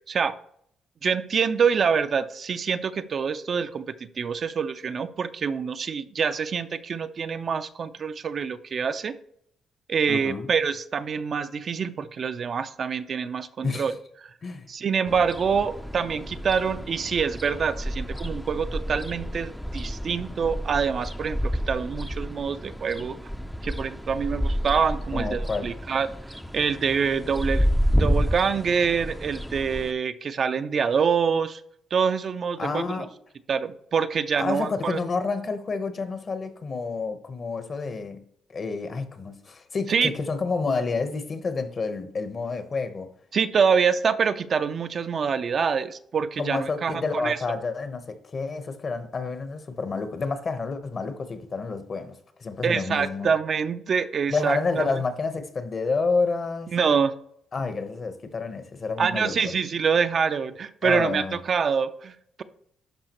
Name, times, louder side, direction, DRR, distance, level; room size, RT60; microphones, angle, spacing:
voice 1, 1.0-9.1 9.9-13.9 14.7-23.2 23.6-26.1 26.5-27.7 28.0-31.6 31.9-32.8 33.5-35.0 39.9-40.1 43.3-47.4 52.6-54.8 56.7-57.1 59.0-62.4, right 6 dB, 50° right, 0.5 m, -25 dB
voice 2, 10.1-10.5 13.6-13.9 14.4-14.7 25.1-25.8 32.6-33.1 34.4-43.1 46.4-53.4 54.3-56.7 57.5-59.3 60.8-61.4, left 4 dB, 40° left, 1.0 m, -29 dB
sound 1, 15.1-29.9, equal, 5° left, 0.5 m, -30 dB
12.0 x 4.9 x 3.0 m
cardioid pair, 90°, 0 cm